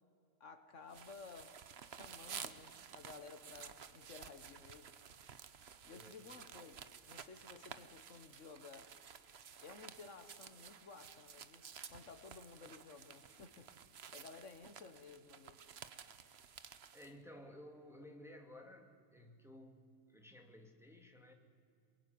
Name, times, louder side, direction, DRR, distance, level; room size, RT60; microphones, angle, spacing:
voice 1, 0.4-1.6 1.8-4.9 5.8-8.9 9.6-11.6 11.9-13.7 14.1-15.6, left 4 dB, 70° left, 9 dB, 1.6 m, -55 dB
sound 1, 0.9-17.1, right 7 dB, 55° right, 1.1 m, -53 dB
voice 2, 16.9-19.8 20.1-21.3, left 1 dB, ahead, 3 dB, 2.2 m, -56 dB
23.0 x 22.0 x 9.5 m, 2.3 s
omnidirectional pair, 1.4 m